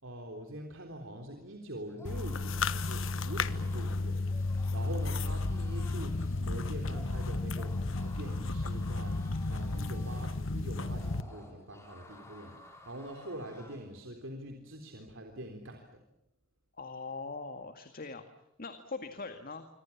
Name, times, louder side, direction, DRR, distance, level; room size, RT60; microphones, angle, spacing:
voice 1, 0.0-15.9, right 1 dB, 75° right, 3 dB, 3.7 m, -44 dB
sound 1, 1.9-14.0, left 2 dB, 15° left, 5.9 m, -55 dB
sound 2, 2.0-11.2, left 3 dB, 80° left, 1.3 m, -33 dB
voice 2, 16.8-18.2 18.6-19.7, left 3 dB, 45° left, 8 dB, 2.0 m, -41 dB
26.5 x 25.5 x 7.3 m, 0.85 s
head